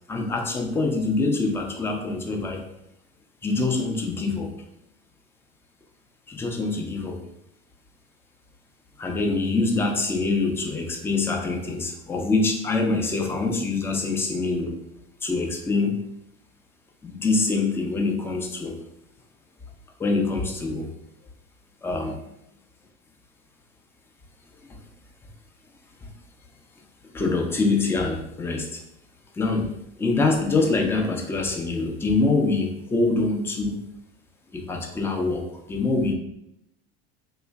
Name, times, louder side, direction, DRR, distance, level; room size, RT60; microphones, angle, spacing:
voice 1, 0.1-2.6 3.4-4.5 6.3-7.2 9.0-14.7 15.2-16.0 17.0-18.8 20.0-20.9 21.8-22.2 26.0-26.1 27.1-28.8 29.3-29.7 30.0-33.8 34.5-36.1, left 3 dB, 5° left, 2 dB, 0.3 m, -25 dB
3.0 x 2.4 x 2.2 m, 0.80 s
hypercardioid pair, 80°, 34 cm